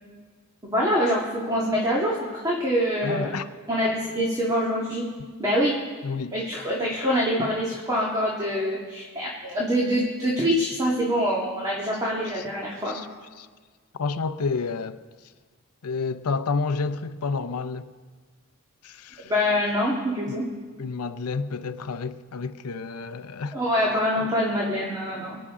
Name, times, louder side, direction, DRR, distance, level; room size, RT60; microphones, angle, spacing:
voice 1, 0.6-3.3 3.7-5.1 5.4-5.7 6.3-13.0 19.2-20.5 23.5-25.4, equal, 15° right, 1.9 m, -25 dB
voice 2, 3.0-3.5 6.0-6.3 12.3-12.4 12.9-13.1 13.4-13.5 14.0-15.0 15.8-17.9 18.8-19.3 20.3-20.4 20.8-23.6, left 4 dB, 80° left, 0.6 m, -30 dB
24.5 x 9.5 x 3.7 m
head